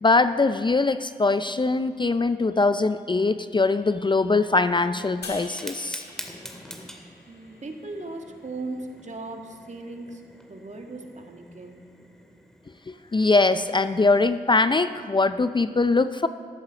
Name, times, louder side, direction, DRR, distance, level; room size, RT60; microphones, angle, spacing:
voice 1, 0.0-6.0 12.9-16.3, left 3 dB, 30° left, 12 dB, 0.5 m, -22 dB
sound 1, 5.2-8.5, left 3 dB, 75° left, 1.6 m, -45 dB
Fire, 5.4-14.3, equal, 5° left, 2.1 m, -46 dB
voice 2, 7.3-11.9, right 2 dB, 45° right, 3 dB, 1.8 m, -38 dB
14.5 x 8.0 x 6.7 m, 2.1 s
supercardioid pair, 40°, 17 cm